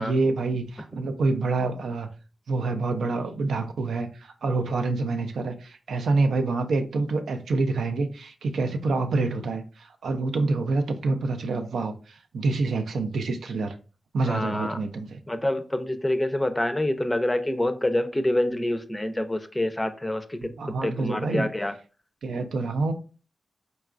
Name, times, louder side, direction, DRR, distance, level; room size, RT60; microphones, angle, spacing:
voice 1, 0.0-2.1 2.5-13.8 14.1-15.2 20.4-21.5 22.2-22.9, right 3 dB, 85° right, 0.3 m, -27 dB
voice 2, 14.2-14.8 15.3-21.7, left 1 dB, 20° left, 0.4 m, -27 dB
3.7 x 2.3 x 2.4 m
cardioid pair, 45°, 0 cm